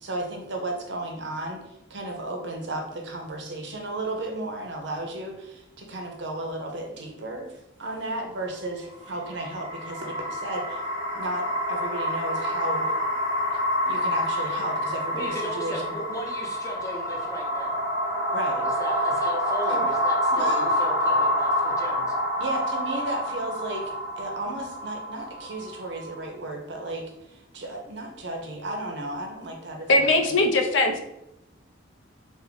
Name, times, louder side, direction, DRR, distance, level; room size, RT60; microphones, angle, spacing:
voice 1, 0.0-10.8 11.1-12.9 13.5-13.6 13.9-15.9 18.3-18.7 19.7-19.9 20.3-20.9 22.4-30.3, right 1 dB, 60° right, 2 dB, 0.6 m, -34 dB
sound 1, 9.0-26.2, equal, 25° right, 0.7 m, -27 dB
voice 2, 15.1-17.8 18.6-22.1, equal, 15° left, -1 dB, 0.6 m, -36 dB
voice 3, 29.9-31.0, left 2 dB, 70° left, 5 dB, 0.5 m, -20 dB
3.4 x 2.0 x 3.7 m, 0.88 s
head